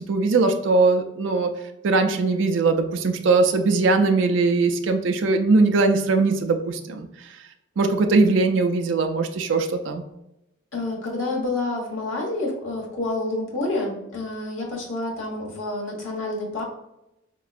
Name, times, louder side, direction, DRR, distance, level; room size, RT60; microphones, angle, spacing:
voice 1, 0.0-1.5 1.8-7.1 7.8-10.0, right 3 dB, 70° right, 5 dB, 0.4 m, -20 dB
voice 2, 10.7-16.6, left 2 dB, 90° left, -2 dB, 1.2 m, -28 dB
4.2 x 2.9 x 2.4 m, 0.88 s
head